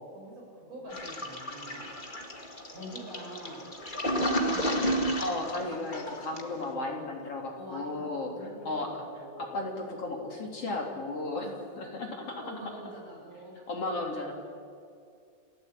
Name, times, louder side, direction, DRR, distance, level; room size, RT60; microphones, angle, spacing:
voice 1, 0.1-1.9 2.7-3.7 4.0-5.2 6.7-7.0 7.5-9.6 11.4-11.5 12.4-13.5, right 1 dB, 45° right, -2 dB, 8.3 m, -44 dB
Toilet flush, 0.9-6.6, equal, 20° left, 1.4 m, -32 dB
voice 2, 5.2-8.9 9.4-11.5 11.8-12.4 13.7-14.3, left 2 dB, 40° left, 1 dB, 3.8 m, -34 dB
29.0 x 17.0 x 9.0 m, 2.4 s
omnidirectional pair, 4.2 m